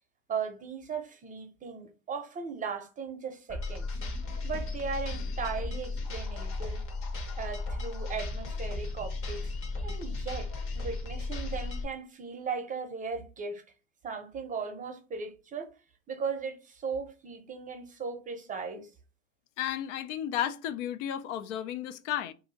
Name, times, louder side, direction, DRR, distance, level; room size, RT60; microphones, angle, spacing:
voice 1, 0.3-3.9 4.4-6.8 7.4-9.5 9.8-10.5 10.7-13.6 14.0-15.7 16.1-18.9, right 5 dB, 20° right, 0.6 m, -37 dB
sound 1, 3.5-11.8, left 2 dB, 35° left, 1.2 m, -35 dB
voice 2, 19.6-22.3, left 10 dB, 60° left, 0.5 m, -33 dB
2.7 x 2.6 x 3.9 m
hypercardioid pair, 100°, 41 cm